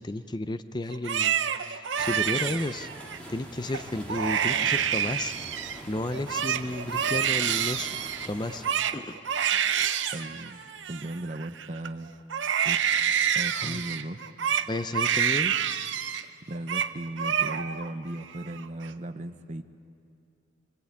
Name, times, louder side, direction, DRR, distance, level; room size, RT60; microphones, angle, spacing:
voice 1, 0.0-2.9 3.3-5.3 5.9-8.6 8.9-9.2 12.5-12.7 13.6-13.9 14.7-15.6, left 1 dB, 20° left, 11 dB, 0.6 m, -33 dB
Crying sobbing, 0.9-3.2 3.7-3.8 4.1-5.8 6.1-11.9 12.3-16.2 16.5-16.9 17.2-17.9 18.2-18.9, right 8 dB, 70° right, 0.8 m, -28 dB
sound 1, 2.0-8.7, right 1 dB, 5° left, 3.1 m, -44 dB
voice 2, 10.1-10.6 10.9-12.1 12.6-12.9 13.3-14.2 16.5-19.6, right 1 dB, 35° right, 7 dB, 0.9 m, -36 dB
25.0 x 22.0 x 8.5 m, 2.5 s
head